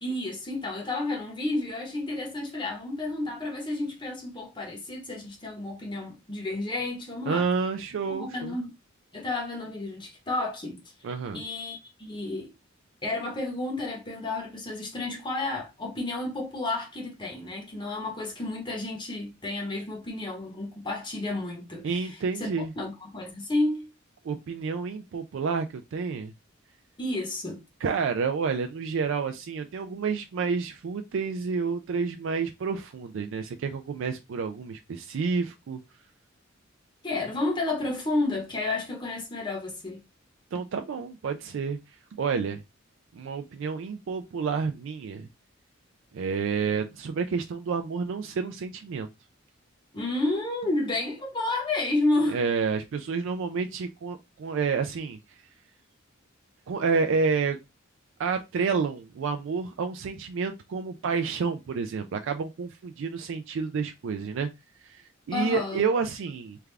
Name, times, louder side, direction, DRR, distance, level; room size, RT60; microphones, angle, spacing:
voice 1, 0.0-7.5 8.0-8.7 9.1-10.8 11.3-12.5 13.0-23.9 27.0-27.6 37.0-40.0 49.9-52.4 65.3-65.8, left 2 dB, 25° left, 1.1 m, -31 dB
voice 2, 7.3-8.5 11.0-11.4 21.8-22.7 24.3-26.3 27.8-35.8 40.5-41.8 42.2-42.6 43.1-45.3 46.1-49.1 52.3-55.2 56.7-57.6 58.2-64.5 64.8-66.6, right 5 dB, 65° right, 0.4 m, -29 dB
3.4 x 2.3 x 3.3 m
head